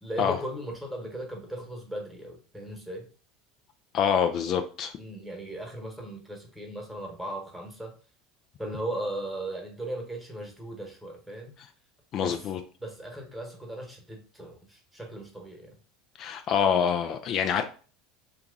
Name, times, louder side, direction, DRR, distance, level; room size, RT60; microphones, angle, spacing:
voice 1, 0.0-3.0 5.0-8.0 8.6-11.6 12.2-12.5 12.8-15.8, right 1 dB, 5° right, 1 dB, 1.2 m, -37 dB
voice 2, 3.9-4.9 12.1-12.6 16.2-17.6, left 7 dB, 50° left, 6 dB, 0.3 m, -26 dB
2.8 x 2.4 x 3.7 m, 0.39 s
supercardioid pair, 95°, 0 cm